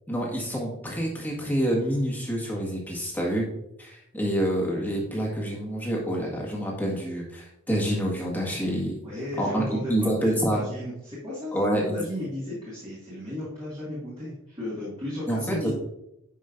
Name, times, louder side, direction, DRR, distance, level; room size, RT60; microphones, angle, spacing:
voice 1, 0.1-3.5 3.8-9.0 9.4-10.6 11.5-12.0 15.3-15.7, equal, 10° left, -2 dB, 1.7 m, -27 dB
voice 2, 9.0-15.7, left 1 dB, 25° right, -8 dB, 2.1 m, -35 dB
10.0 x 5.4 x 2.6 m, 0.84 s
head